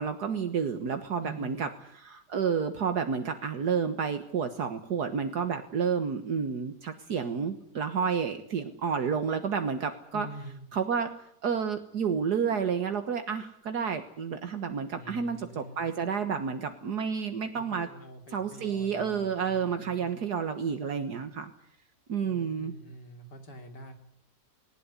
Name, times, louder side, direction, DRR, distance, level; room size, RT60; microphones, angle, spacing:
voice 1, 0.0-1.7 2.0-10.3 10.7-11.1 11.4-17.9 18.3-21.5 22.1-22.7, right 6 dB, 70° right, 7 dB, 1.9 m, -30 dB
voice 2, 1.2-1.7 10.1-10.7 15.0-15.9 17.6-20.2 22.2-23.9, right 1 dB, 80° left, 5 dB, 3.5 m, -46 dB
19.5 x 18.5 x 9.8 m, 0.69 s
omnidirectional pair, 1.8 m